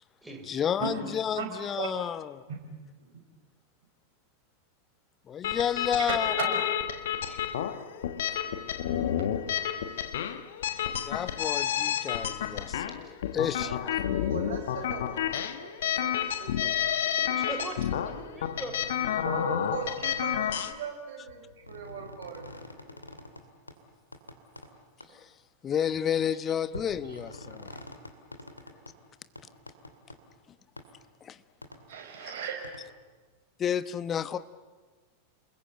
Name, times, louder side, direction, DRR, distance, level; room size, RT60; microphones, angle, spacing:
voice 1, 0.5-2.4 5.3-6.5 10.8-14.0 25.1-25.3 25.6-27.8 31.2-31.4 33.6-34.4, left 8 dB, 25° left, 14 dB, 1.0 m, -31 dB
sound 1, 5.4-20.7, left 10 dB, 60° left, 1.4 m, -30 dB
voice 2, 6.1-6.6 9.9-10.3 13.6-13.7 14.2-16.7 19.2-23.0 31.9-32.6, right 6 dB, 55° right, 3 dB, 5.8 m, -38 dB
voice 3, 17.2-19.3, right 2 dB, 5° right, 2 dB, 5.4 m, -41 dB
sound 2, 21.3-23.4 23.7-23.8 24.1-24.7 25.0-25.1 25.8-26.0 26.7-28.9 29.4-30.2 30.8-30.9 31.6-31.8 32.6-32.8, left 1 dB, 85° left, 2.5 m, -45 dB
30.0 x 21.0 x 9.1 m, 1.3 s
figure-of-eight pair, 90°, 0 cm